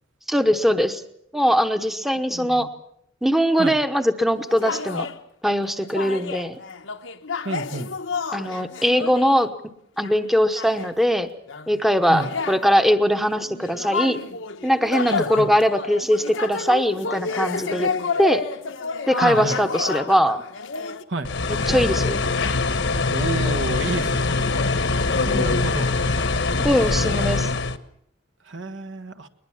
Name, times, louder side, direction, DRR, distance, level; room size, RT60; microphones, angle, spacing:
voice 1, 0.3-1.0 1.3-2.7 3.2-5.1 5.4-6.6 8.3-9.5 10.0-11.3 11.7-14.2 14.6-17.9 18.2-18.5 19.1-20.4 21.5-22.2 25.3-25.7 26.6-27.5, equal, ahead, 9 dB, 0.9 m, -21 dB
voice 2, 2.3-2.7 3.6-3.7 7.4-7.9 12.1-12.3 15.1-15.5 19.2-19.6 21.1-21.3 23.1-24.3 25.3-25.9 28.4-29.3, right 2 dB, 75° right, 8 dB, 1.6 m, -30 dB
sound 1, 4.3-5.2 5.8-9.5 10.0-10.3 10.6-10.9 11.5-21.0, left 4 dB, 90° left, 1.2 m, -30 dB
sound 2, 21.2-27.8, left 3 dB, 70° left, 1.2 m, -23 dB
21.5 x 20.5 x 7.3 m, 0.73 s
head